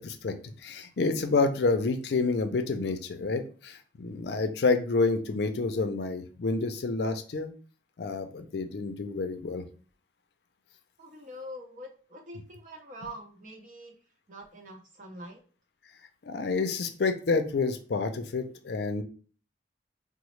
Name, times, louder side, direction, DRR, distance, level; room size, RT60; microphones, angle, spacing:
voice 1, 0.0-7.5 8.0-9.6 16.2-19.0, left 3 dB, 70° left, 7 dB, 0.4 m, -29 dB
voice 2, 11.0-14.0 14.3-15.4, equal, 45° right, 2 dB, 0.7 m, -44 dB
3.9 x 2.0 x 3.1 m, 0.39 s
head